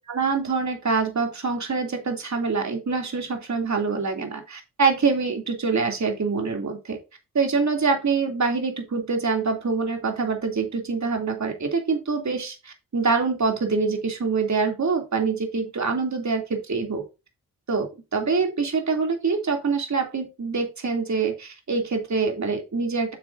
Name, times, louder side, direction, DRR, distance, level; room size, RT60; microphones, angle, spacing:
voice 1, 0.1-7.0 7.3-17.0 17.7-23.1, right 4 dB, 50° right, 3 dB, 2.9 m, -25 dB
9.3 x 7.1 x 2.7 m, 0.27 s
supercardioid pair, 40°, 36 cm